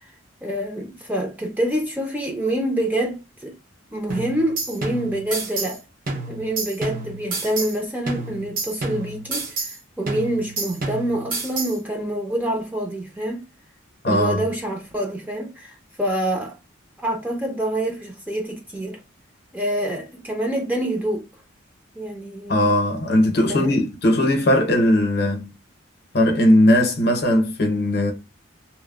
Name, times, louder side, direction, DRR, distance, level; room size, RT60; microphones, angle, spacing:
voice 1, 0.4-3.5 3.9-5.8 6.3-13.4 14.0-16.6 17.0-19.0 19.5-21.2 21.9-22.6 23.5-23.8, right 1 dB, 10° right, 0.5 m, -26 dB
sound 1, 4.1-5.8 6.1-7.8 8.1-9.8 10.1-11.8, right 3 dB, 45° right, 0.7 m, -30 dB
voice 2, 14.0-14.4 22.5-25.5 26.1-28.1, left 1 dB, 50° left, 0.7 m, -18 dB
3.0 x 2.1 x 2.3 m
head